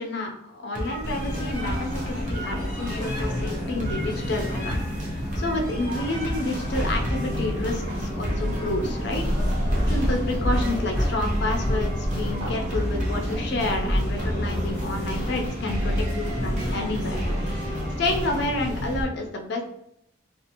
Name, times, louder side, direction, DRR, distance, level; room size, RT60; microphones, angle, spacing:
voice 1, 0.0-4.7 5.1-9.3 9.9-19.6, left 2 dB, 55° left, 2 dB, 0.5 m, -30 dB
sound 1, 0.7-18.7, equal, 35° right, 0.7 m, -31 dB
sound 2, 1.0-19.0, equal, 60° right, 1.5 m, -29 dB
2.6 x 2.4 x 2.8 m, 0.76 s
head